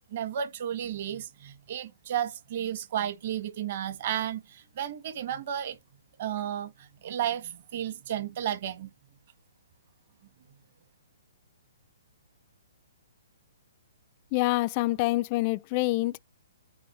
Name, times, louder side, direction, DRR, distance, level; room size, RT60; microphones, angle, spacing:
voice 1, 0.1-5.8 6.2-8.9, right 10 dB, 50° right, 1.6 m, -33 dB
voice 2, 14.3-16.2, left 20 dB, 35° left, 0.3 m, -26 dB
8.6 x 4.7 x 3.2 m
hypercardioid pair, 130°, 0 cm